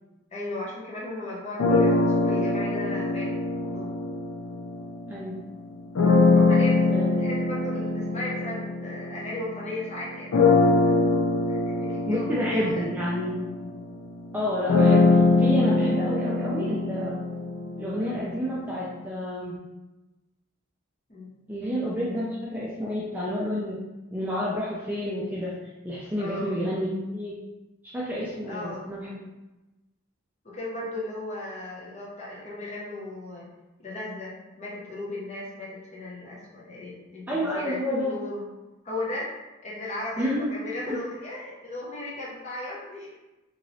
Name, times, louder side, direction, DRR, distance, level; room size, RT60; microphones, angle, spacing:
voice 1, 0.3-3.9 6.4-6.9 7.2-10.3 10.6-10.9 11.5-12.8 21.1-21.3 26.2-26.6 28.5-28.9 30.4-33.5 33.8-38.5 38.8-39.3 39.6-43.2, left 2 dB, 30° left, -5 dB, 0.7 m, -36 dB
sound 1, 1.6-5.1 5.9-9.7 10.3-18.3, left 3 dB, 85° left, 0.4 m, -23 dB
voice 2, 5.1-5.4 6.9-7.3 12.1-13.4 14.3-17.2 17.8-19.6 21.5-23.8 24.1-25.5 25.8-27.4 27.8-29.2 37.3-38.1 40.2-40.5 40.9-41.0, equal, 10° right, -7 dB, 0.3 m, -29 dB
3.0 x 2.8 x 2.7 m, 1.1 s
head